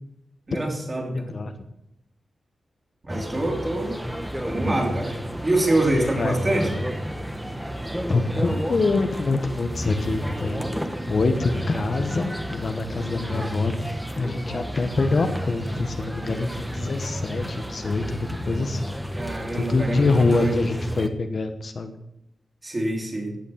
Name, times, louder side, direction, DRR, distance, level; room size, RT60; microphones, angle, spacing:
voice 1, 0.5-1.3 3.0-4.0 4.4-6.7 19.2-20.6 22.6-23.3, right 1 dB, 25° right, 0 dB, 3.3 m, -25 dB
voice 2, 1.1-1.6 5.9-6.3 8.1-13.7 14.2-18.9 19.6-21.9, left 3 dB, 45° left, 6 dB, 1.1 m, -25 dB
sound 1, 3.1-21.1, equal, 5° right, 1.0 m, -31 dB
15.5 x 8.4 x 6.3 m, 0.85 s
wide cardioid pair, 145°, 0 cm